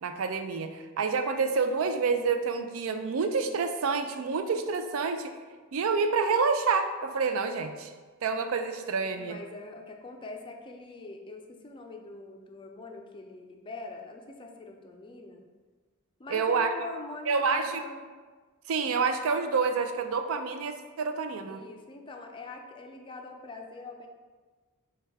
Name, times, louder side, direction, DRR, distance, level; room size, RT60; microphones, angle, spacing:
voice 1, 0.0-5.3 5.7-7.9 8.2-9.4 16.3-16.7 17.3-17.8 18.7-21.6, right 5 dB, 70° right, 7 dB, 0.4 m, -28 dB
voice 2, 9.1-15.4 16.2-18.0 21.5-24.1, left 3 dB, 25° left, 2 dB, 0.4 m, -43 dB
6.4 x 2.3 x 3.4 m, 1.4 s
head